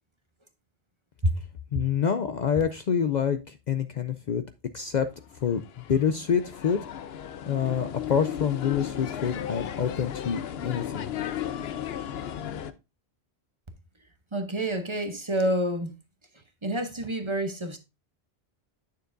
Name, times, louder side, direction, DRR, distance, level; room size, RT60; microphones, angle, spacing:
voice 1, 1.7-4.4 4.7-5.1 5.4-5.6 5.9-6.8 7.4-11.1, left 7 dB, 55° left, 0.6 m, -27 dB
sound 1, 5.1-12.7, left 9 dB, 75° left, 0.9 m, -35 dB
voice 2, 14.3-15.9 16.6-17.8, right 1 dB, 30° right, 0.8 m, -28 dB
9.3 x 6.6 x 2.5 m
omnidirectional pair, 1.0 m